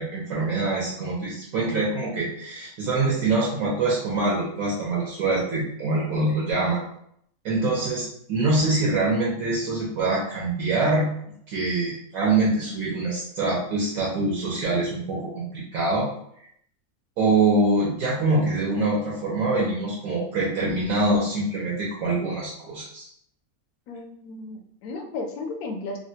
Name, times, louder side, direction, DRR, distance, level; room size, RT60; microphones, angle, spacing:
voice 1, 0.0-6.8 7.4-11.1 11.5-16.1 17.2-23.1, right 2 dB, 75° right, -5 dB, 1.1 m, -24 dB
voice 2, 23.9-26.0, left 3 dB, 90° left, 4 dB, 1.1 m, -34 dB
3.2 x 2.1 x 2.7 m, 0.70 s
omnidirectional pair, 1.6 m